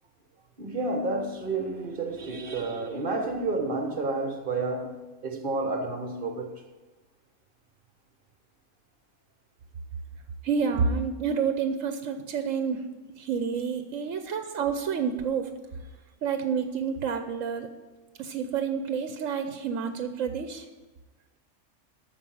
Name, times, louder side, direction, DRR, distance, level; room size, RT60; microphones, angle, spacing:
voice 1, 0.6-6.6, right 3 dB, 45° right, 1.4 m, -30 dB
voice 2, 10.4-12.8 13.2-15.5 16.2-17.7 18.2-20.7, right 6 dB, 80° right, 1.1 m, -29 dB
13.5 x 4.7 x 7.7 m
omnidirectional pair, 1.3 m